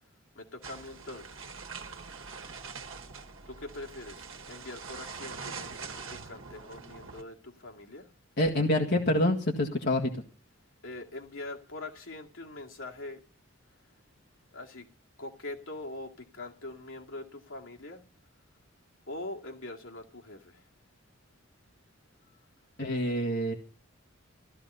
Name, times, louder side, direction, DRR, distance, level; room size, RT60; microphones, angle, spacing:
voice 1, 0.4-1.5 3.5-8.1 10.8-13.2 14.5-14.9 15.2-18.0 19.1-20.6, left 2 dB, 75° left, 1 dB, 2.3 m, -43 dB
sound 1, 0.6-7.2, right 5 dB, 80° right, 1.3 m, -43 dB
voice 2, 8.4-10.2 22.8-23.5, left 1 dB, 55° left, 1 dB, 1.8 m, -27 dB
15.0 x 13.0 x 5.5 m, 0.37 s
head